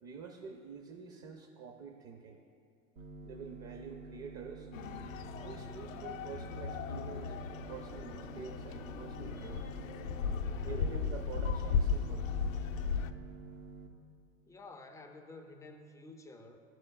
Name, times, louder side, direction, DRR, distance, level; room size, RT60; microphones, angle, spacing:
voice 1, 0.0-2.4 3.2-4.7 5.4-7.4 7.7-9.8 10.6-12.3, right 5 dB, 35° right, 4 dB, 0.6 m, -47 dB
sound 1, 3.0-13.9, right 5 dB, 80° right, 1.0 m, -49 dB
sound 2, 4.7-13.1, left 6 dB, 75° left, 0.5 m, -36 dB
voice 2, 14.5-16.6, left 2 dB, 10° left, 4 dB, 0.3 m, -51 dB
12.5 x 4.5 x 2.3 m, 2.5 s
figure-of-eight pair, 75°, 40 cm